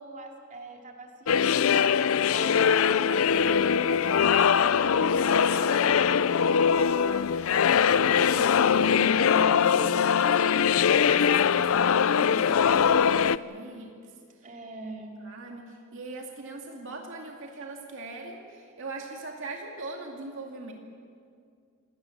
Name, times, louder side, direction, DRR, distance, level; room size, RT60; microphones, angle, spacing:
voice 1, 0.0-2.6 3.0-7.4 7.8-9.7 14.4-15.2, right 2 dB, 40° right, 1 dB, 2.8 m, -42 dB
sound 1, 1.3-13.4, left 7 dB, 70° left, 0.5 m, -22 dB
voice 2, 8.0-9.1 9.8-13.9 15.2-20.7, right 2 dB, 65° right, 1 dB, 2.4 m, -41 dB
27.0 x 18.5 x 7.4 m, 2.2 s
head